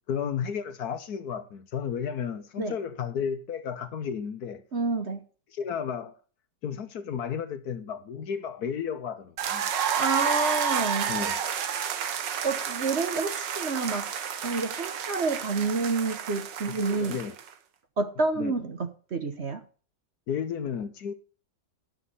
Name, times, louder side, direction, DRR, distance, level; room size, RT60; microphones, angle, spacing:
voice 1, 0.1-4.6 5.5-6.1 6.6-9.7 11.1-11.4 16.6-17.4 18.4-18.5 20.3-21.1, left 7 dB, 65° left, 1.4 m, -33 dB
voice 2, 4.7-5.2 10.0-11.1 12.4-14.1 14.4-17.2 18.0-19.6, right 3 dB, 40° right, 1.2 m, -29 dB
sound 1, 9.4-17.5, right 8 dB, 85° right, 1.7 m, -30 dB
12.5 x 6.6 x 5.5 m
omnidirectional pair, 1.9 m